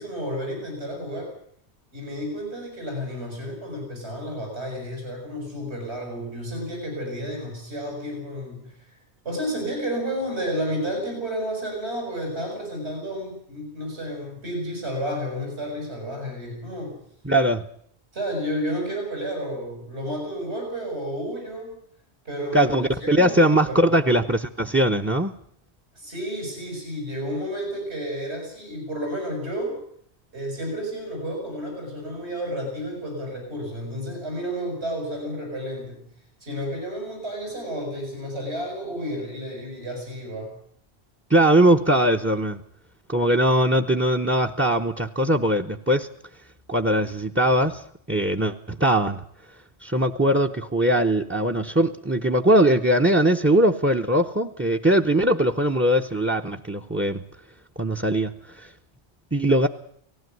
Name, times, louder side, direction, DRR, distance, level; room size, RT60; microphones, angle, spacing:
voice 1, 0.0-1.3 1.9-9.0 9.2-17.0 18.1-21.8 22.2-22.8 23.1-23.8 25.9-29.8 30.3-36.0 36.4-40.5, equal, 80° right, 1 dB, 6.8 m, -31 dB
voice 2, 17.2-17.6 22.5-25.3 41.3-42.6 43.1-46.1 46.7-47.8 48.1-49.2 49.8-57.2 57.8-58.7 59.3-59.7, right 1 dB, 15° right, 9 dB, 0.7 m, -21 dB
19.0 x 16.0 x 9.3 m, 0.66 s
omnidirectional pair, 1.1 m